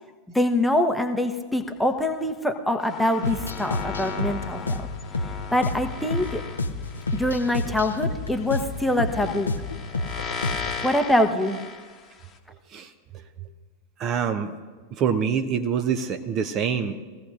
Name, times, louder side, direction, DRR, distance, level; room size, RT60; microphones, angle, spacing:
voice 1, 0.3-4.9 5.5-6.4 7.1-9.5 10.8-11.6, left 1 dB, 5° left, 6 dB, 0.9 m, -24 dB
sound 1, 2.8-12.4, left 5 dB, 25° left, 1.1 m, -38 dB
sound 2, 3.2-10.9, left 2 dB, 75° left, 0.7 m, -30 dB
voice 2, 14.0-14.5 15.0-17.0, right 7 dB, 35° right, 8 dB, 0.7 m, -25 dB
22.0 x 15.5 x 2.5 m, 1.4 s
figure-of-eight pair, 90°, 0 cm